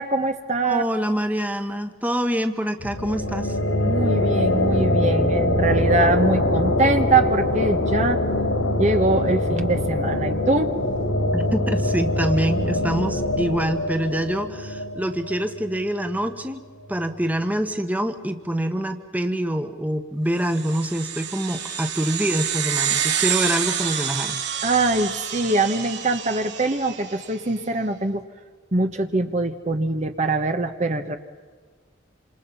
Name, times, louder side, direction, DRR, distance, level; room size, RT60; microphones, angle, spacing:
voice 1, 0.0-0.8 3.8-8.3 8.8-10.8 24.6-28.2 28.7-31.2, right 2 dB, 35° right, 6 dB, 1.2 m, -23 dB
voice 2, 0.6-3.6 11.3-16.6 16.9-24.4, right 1 dB, 10° right, 7 dB, 1.4 m, -25 dB
sound 1, 2.8-16.2, left 1 dB, 85° left, 4.1 m, -23 dB
sound 2, 20.5-27.3, right 9 dB, 60° right, 5.2 m, -28 dB
28.0 x 27.0 x 5.6 m, 1.5 s
head